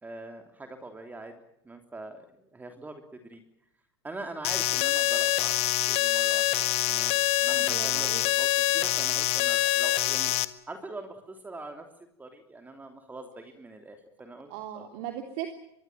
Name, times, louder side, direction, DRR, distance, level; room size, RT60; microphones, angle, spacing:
voice 1, 0.0-1.3 1.6-3.4 4.0-10.3 10.7-11.8 12.2-14.9, right 2 dB, 10° right, 5 dB, 3.3 m, -43 dB
sound 1, 4.4-10.4, left 18 dB, 50° left, 1.5 m, -25 dB
voice 2, 7.5-8.2 14.5-15.5, right 11 dB, 55° right, 5 dB, 3.3 m, -37 dB
24.5 x 22.5 x 7.6 m, 0.80 s
hypercardioid pair, 95°, 14 cm